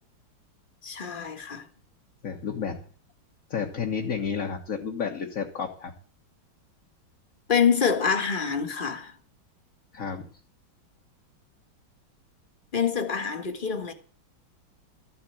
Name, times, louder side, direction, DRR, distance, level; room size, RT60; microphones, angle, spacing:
voice 1, 0.8-1.7 7.5-9.1 12.7-13.9, left 6 dB, 25° left, 1.6 m, -26 dB
voice 2, 2.2-2.8 3.5-5.9 9.9-10.3, left 6 dB, 45° left, 1.8 m, -31 dB
14.0 x 7.6 x 8.7 m
omnidirectional pair, 2.2 m